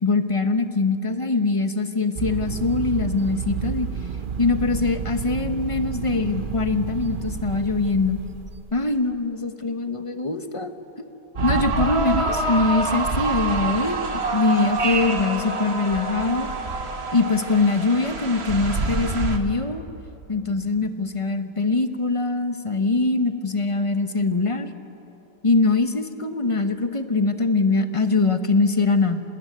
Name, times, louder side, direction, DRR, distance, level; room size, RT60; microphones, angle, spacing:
voice 1, 0.0-3.9 4.4-8.2 8.7-10.7 11.4-14.0 14.3-16.5 17.1-19.8 20.3-24.7 25.4-29.2, left 3 dB, 30° left, 8 dB, 0.6 m, -22 dB
sound 1, 2.2-8.8, right 7 dB, 70° right, 0.4 m, -31 dB
sound 2, 11.4-19.4, right 3 dB, 35° right, 1.5 m, -26 dB
26.0 x 20.0 x 9.4 m, 3.0 s
omnidirectional pair, 2.0 m